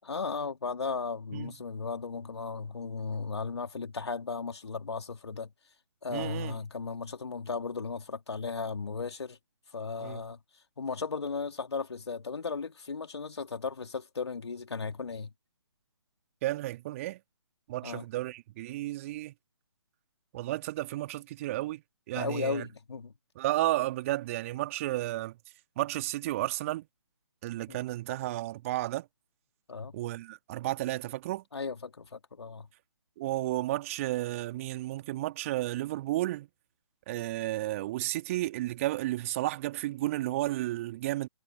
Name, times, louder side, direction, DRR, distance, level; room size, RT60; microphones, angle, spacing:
voice 1, 0.0-5.5 6.0-9.4 9.7-10.4 10.8-15.3 17.8-18.0 22.1-23.1 27.7-27.8 29.7-29.9 31.5-32.7, left 4 dB, 65° left, 3.2 m, -36 dB
voice 2, 6.1-6.6 10.0-10.2 16.4-17.2 17.7-19.3 20.3-22.7 23.4-25.4 25.8-26.9 27.4-29.1 29.9-31.4 33.2-36.5 37.1-41.3, right 16 dB, 30° right, 2.3 m, -32 dB
figure-of-eight pair, 140°, 15 cm